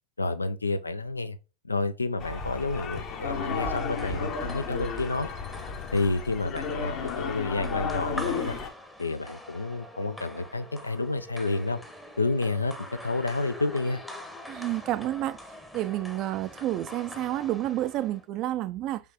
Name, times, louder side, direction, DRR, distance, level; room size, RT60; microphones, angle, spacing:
voice 1, 0.2-1.4 1.6-5.3 5.9-8.6 9.0-11.8 12.2-12.7 13.0-14.0, left 3 dB, 85° left, 0.3 m, -29 dB
sound 1, 2.2-8.7, left 6 dB, 40° left, 0.8 m, -33 dB
sound 2, 3.4-18.3, left 1 dB, 5° left, 0.8 m, -44 dB
voice 2, 14.5-15.4 15.7-19.0, right 14 dB, 40° right, 0.3 m, -30 dB
5.0 x 3.2 x 2.8 m
figure-of-eight pair, 90°, 0 cm